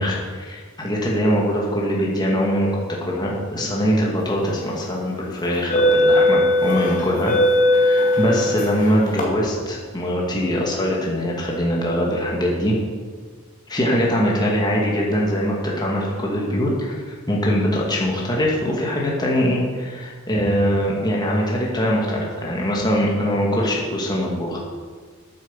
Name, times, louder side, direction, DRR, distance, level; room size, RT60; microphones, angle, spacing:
voice 1, 0.0-7.3 7.8-12.8 13.7-24.6, equal, 20° left, -3 dB, 2.1 m, -22 dB
sound 1, 4.4-4.7 5.4-9.2, left 1 dB, 35° left, 2.4 m, -19 dB
9.1 x 9.0 x 7.3 m, 1.6 s
head